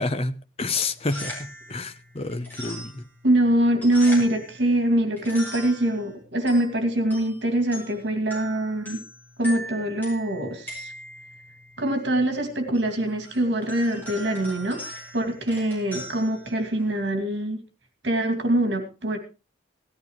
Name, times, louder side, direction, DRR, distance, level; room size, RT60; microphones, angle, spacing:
voice 1, 0.0-3.1, left 3 dB, 30° left, 0.8 m, -29 dB
sound 1, 0.9-17.1, equal, 10° left, 7.0 m, -41 dB
voice 2, 3.2-9.0 9.4-10.9 11.8-14.8 15.1-17.6 18.0-19.2, right 1 dB, 65° right, 2.5 m, -23 dB
18.0 x 13.5 x 3.2 m
head